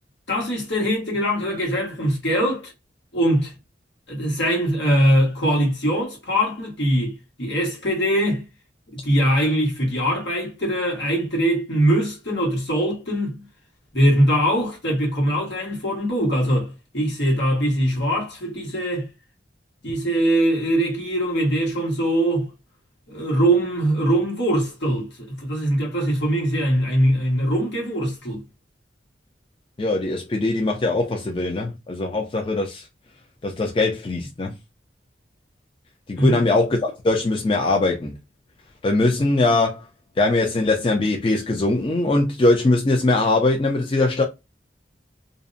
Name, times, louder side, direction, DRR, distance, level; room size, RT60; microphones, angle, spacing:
voice 1, 0.3-2.7 3.1-3.5 4.1-8.4 8.9-13.5 13.9-19.1 19.8-22.5 23.1-28.4 36.2-36.4, right 1 dB, 80° left, 1.3 m, -22 dB
voice 2, 29.8-32.9 33.4-34.5 36.1-38.2 38.8-39.8 40.2-44.2, left 2 dB, 30° left, 0.4 m, -21 dB
2.6 x 2.0 x 2.5 m
head